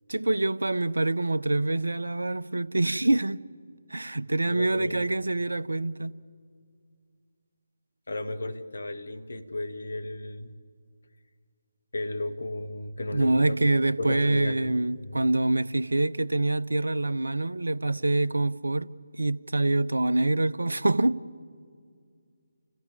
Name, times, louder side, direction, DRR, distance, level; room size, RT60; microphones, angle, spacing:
voice 1, 0.1-3.4 3.9-6.2 13.1-18.9 19.2-21.2, right 2 dB, 70° right, 0.6 m, -25 dB
voice 2, 4.5-5.0 8.1-10.6 11.9-13.6 14.0-15.1, left 2 dB, 60° left, 1.6 m, -34 dB
30.0 x 14.5 x 9.7 m
figure-of-eight pair, 150°, 0 cm